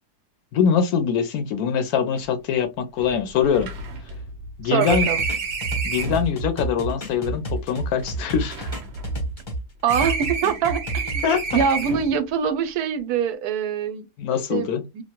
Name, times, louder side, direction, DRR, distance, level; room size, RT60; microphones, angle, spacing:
voice 1, 0.5-3.7 4.6-5.1 5.8-8.7 11.2-11.4 14.2-14.8, left 7 dB, 75° left, 1.0 m, -23 dB
sound 1, 2.2-2.3 2.5-2.6 3.0-6.3 7.1-9.5 9.9-12.2, right 4 dB, 55° right, 0.8 m, -30 dB
voice 2, 4.6-5.2 9.8-11.2 11.5-14.0 14.5-15.0, right 7 dB, 80° right, 1.1 m, -24 dB
sound 2, 4.9-9.6 9.9-11.6, right 2 dB, 30° left, 0.5 m, -30 dB
3.0 x 2.2 x 2.8 m
omnidirectional pair, 1.7 m